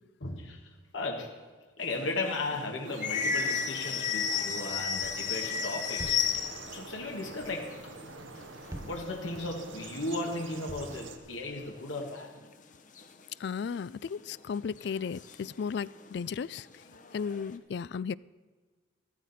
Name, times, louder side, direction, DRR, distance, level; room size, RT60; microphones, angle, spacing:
voice 1, 0.2-1.4 1.8-6.4 6.7-7.8 8.8-12.4, left 2 dB, 85° left, 1 dB, 1.7 m, -36 dB
sound 1, 1.8-6.8 7.1-7.2 7.4-8.8 9.3-9.4 9.6-10.1 10.9-11.0 11.6-12.5 13.0-13.1 14.2-14.3 14.8-16.2 16.5-17.5, left 6 dB, 40° left, 0.9 m, -34 dB
sound 2, 2.8-11.2, right 4 dB, 85° right, 1.2 m, -46 dB
sound 3, 4.7-11.7, right 1 dB, 15° right, 0.6 m, -49 dB
voice 2, 13.4-16.7 17.1-18.1, left 6 dB, 60° left, 20 dB, 0.3 m, -35 dB
14.5 x 14.0 x 4.2 m, 1.5 s
head